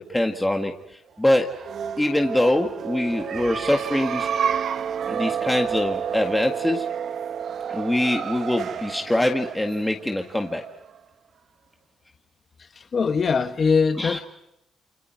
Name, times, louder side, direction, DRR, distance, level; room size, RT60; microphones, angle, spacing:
voice 1, 0.0-1.5 2.0-4.4 5.1-6.9 7.7-10.6 14.0-14.2, left 1 dB, 10° left, 3 dB, 1.9 m, -24 dB
sound 1, 1.4-11.0, right 8 dB, 60° right, 1.1 m, -30 dB
voice 2, 12.6-14.2, left 5 dB, 45° left, 9 dB, 1.3 m, -22 dB
29.5 x 25.5 x 4.7 m, 0.81 s
cardioid pair, 90°, 0 cm